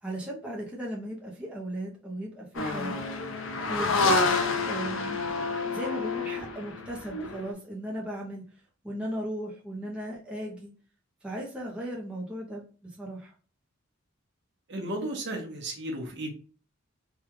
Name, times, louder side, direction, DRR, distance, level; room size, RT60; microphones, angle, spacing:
voice 1, 0.0-3.0 3.7-5.2 5.7-8.4 8.8-10.7 11.2-13.3, right 1 dB, 5° right, -4 dB, 0.6 m, -37 dB
sound 1, 2.5-7.5, left 3 dB, 70° left, 0.5 m, -28 dB
voice 2, 14.7-16.3, right 1 dB, 55° right, 0 dB, 0.9 m, -34 dB
3.4 x 2.3 x 3.0 m, 0.39 s
head